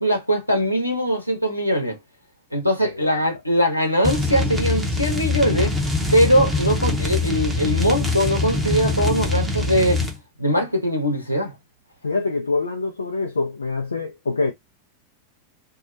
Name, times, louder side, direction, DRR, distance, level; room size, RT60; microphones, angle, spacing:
voice 1, 0.0-2.0 2.5-5.7 6.1-10.0 10.4-11.5, equal, 90° left, 0.9 m, -21 dB
sound 1, 4.0-10.2, left 3 dB, 10° right, 0.8 m, -23 dB
voice 2, 12.0-14.5, left 3 dB, 75° left, 0.4 m, -25 dB
2.6 x 2.1 x 2.5 m
figure-of-eight pair, 90°, 0 cm